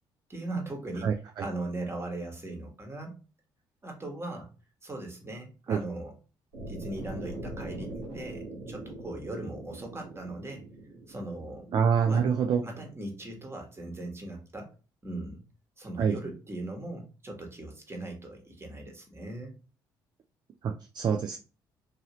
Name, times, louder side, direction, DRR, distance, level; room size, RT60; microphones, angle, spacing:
voice 1, 0.3-1.1 1.4-3.1 3.8-4.5 4.8-6.2 6.7-10.6 11.1-11.7 12.0-12.3 12.6-14.7 15.0-15.4 15.8-19.5, right 2 dB, 25° right, 2 dB, 1.3 m, -39 dB
sound 1, 6.5-12.6, right 1 dB, 90° right, 1.4 m, -42 dB
voice 2, 11.7-12.6 16.0-16.1 20.6-21.4, right 6 dB, 45° right, 4 dB, 0.4 m, -25 dB
2.7 x 2.7 x 3.0 m, 0.34 s
hypercardioid pair, 60°, 10 cm